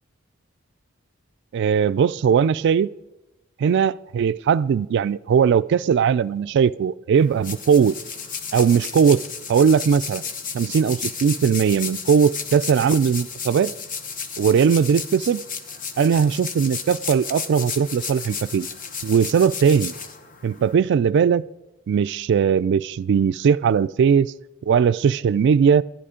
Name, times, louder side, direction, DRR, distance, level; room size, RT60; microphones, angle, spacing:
voice 1, 1.5-2.9 3.6-7.9 8.5-9.2 9.5-10.2 10.5-13.7 14.4-15.4 16.0-18.7 19.0-19.9 20.4-21.4 21.9-24.3 24.7-25.8, right 7 dB, 60° right, 0.3 m, -19 dB
sound 1, 7.2-20.7, left 6 dB, 40° left, 0.9 m, -33 dB
11.0 x 11.0 x 5.0 m
head